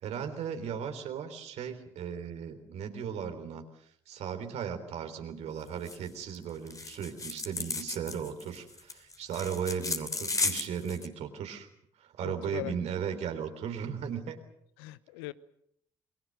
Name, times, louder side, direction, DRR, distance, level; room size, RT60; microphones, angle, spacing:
voice 1, 0.0-3.6 4.1-11.7 12.0-14.4, right 7 dB, 65° right, 7 dB, 3.6 m, -36 dB
sound 1, 5.9-6.1 6.3-6.4 6.7-11.1, left 3 dB, 30° left, 3.2 m, -34 dB
voice 2, 12.2-12.8 14.8-15.3, left 18 dB, 80° left, 17 dB, 0.9 m, -40 dB
28.0 x 22.5 x 6.4 m, 0.70 s
hypercardioid pair, 50°, 12 cm